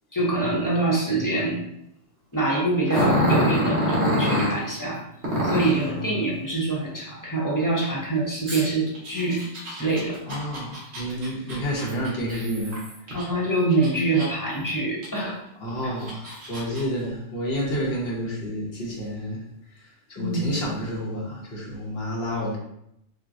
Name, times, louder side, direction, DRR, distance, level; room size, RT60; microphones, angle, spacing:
voice 1, 0.1-1.6 2.3-5.0 5.4-9.4 9.7-10.2 13.1-15.4 15.8-15.9 20.2-20.4, right 2 dB, 20° left, -5 dB, 0.8 m, -25 dB
Growling, 2.9-4.6 5.2-5.8 8.5-13.2 13.7-14.5 15.0-15.1 15.8-16.8, equal, 70° right, 1.4 m, -26 dB
voice 2, 5.9-6.3 10.3-13.2 15.6-19.4 19.8-22.6, equal, 65° left, -3 dB, 1.3 m, -30 dB
6.1 x 2.2 x 2.6 m, 0.79 s
omnidirectional pair, 1.2 m